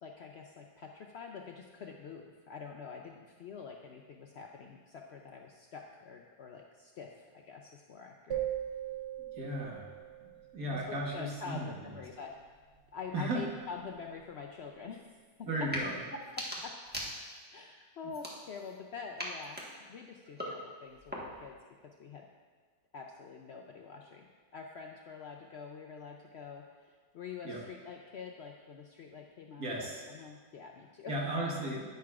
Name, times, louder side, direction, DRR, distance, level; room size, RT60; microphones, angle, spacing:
voice 1, 0.0-8.5 10.7-12.5 12.9-15.0 15.4-15.7 16.1-16.7 17.5-21.6 22.0-22.3 22.9-24.3 24.5-31.3, left 5 dB, 65° left, 1 dB, 0.6 m, -46 dB
sound 1, 8.3-10.6, right 12 dB, 55° right, 0.9 m, -38 dB
voice 2, 9.4-9.9 10.5-11.9 13.1-13.4 15.5-16.0 27.4-27.6 29.6-30.0 31.1-31.9, right 1 dB, 70° right, -2 dB, 1.9 m, -35 dB
sound 2, 15.6-15.9 16.2-17.5 18.1-18.8 19.2-21.5, equal, 5° right, 1.1 m, -42 dB
10.5 x 9.3 x 2.4 m, 1.5 s
omnidirectional pair, 1.6 m